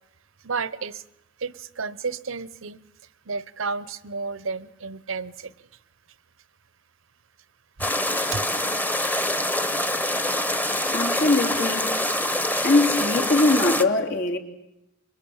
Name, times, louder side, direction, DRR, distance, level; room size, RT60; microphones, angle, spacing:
voice 1, 0.4-1.0 1.4-2.8 3.3-5.5 7.8-7.9 8.3-8.4, right 4 dB, 70° right, 17 dB, 0.9 m, -31 dB
sound 1, 7.8-13.9, left 1 dB, 10° left, 1.2 m, -25 dB
voice 2, 10.7-12.0 12.6-14.4, left 2 dB, 65° left, 1 dB, 3.4 m, -22 dB
25.5 x 22.5 x 8.8 m, 0.87 s
head